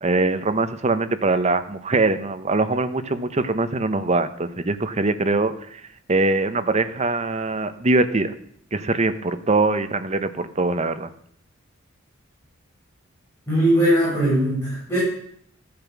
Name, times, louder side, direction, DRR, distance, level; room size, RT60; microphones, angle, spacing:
voice 1, 0.0-5.5 6.1-8.3 8.7-11.1, right 3 dB, 30° right, 10 dB, 0.9 m, -22 dB
voice 2, 13.5-15.0, right 1 dB, 10° left, -10 dB, 6.5 m, -20 dB
14.5 x 8.7 x 6.0 m, 0.65 s
head